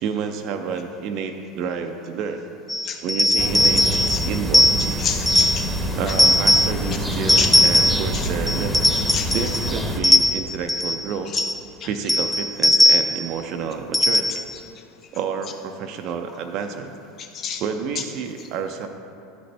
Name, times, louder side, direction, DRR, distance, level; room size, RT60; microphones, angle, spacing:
voice 1, 0.0-2.4 3.0-4.7 5.9-11.3 11.8-14.4 15.1-16.9 17.6-18.9, right 6 dB, 55° right, 5 dB, 0.4 m, -30 dB
sound 1, 2.7-5.7 6.1-6.8 7.3-8.1 8.5-9.7 10.0-11.0 11.4-11.6 12.1-13.3 13.9-14.5, left 1 dB, 15° left, 0.4 m, -18 dB
sound 2, 3.4-10.0, equal, ahead, 1.0 m, -26 dB
voice 2, 5.0-5.7 6.1-6.2 7.4-7.5 8.1-8.3 9.1-9.3 11.3-11.4 11.8-11.9 17.2-17.6, left 7 dB, 40° left, 4 dB, 0.8 m, -28 dB
11.0 x 4.0 x 3.3 m, 2.6 s
hypercardioid pair, 90°, 0 cm